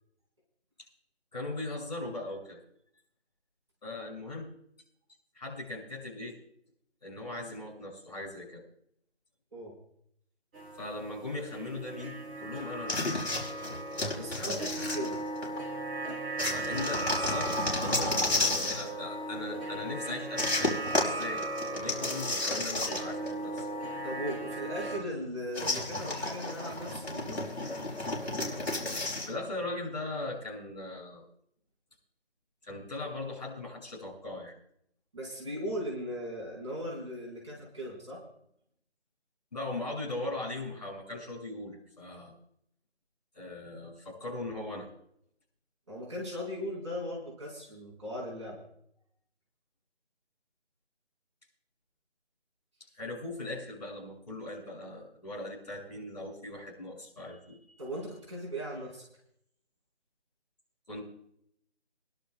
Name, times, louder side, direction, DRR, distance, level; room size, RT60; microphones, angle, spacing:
voice 1, 1.3-2.6 3.8-4.5 5.3-6.3 7.0-8.6 10.8-13.0 14.1-14.7 16.4-17.5 17.8-21.4 21.7-23.7 29.3-31.2 32.6-34.5 39.5-42.3 43.3-44.9 52.9-57.8 60.9-61.0, left 2 dB, 35° left, -4 dB, 6.2 m, -39 dB
sound 1, 10.5-25.0, right 2 dB, 5° right, 1.8 m, -37 dB
sound 2, 12.9-15.6 16.4-18.9 20.4-23.3 23.6-23.7 25.5-29.3, left 2 dB, 65° left, 4.9 m, -32 dB
voice 2, 14.0-15.2 23.9-27.5 35.1-38.2 45.9-48.6 57.8-59.0, equal, 25° right, -5 dB, 4.1 m, -38 dB
27.5 x 11.5 x 2.3 m, 0.72 s
figure-of-eight pair, 175°, 34 cm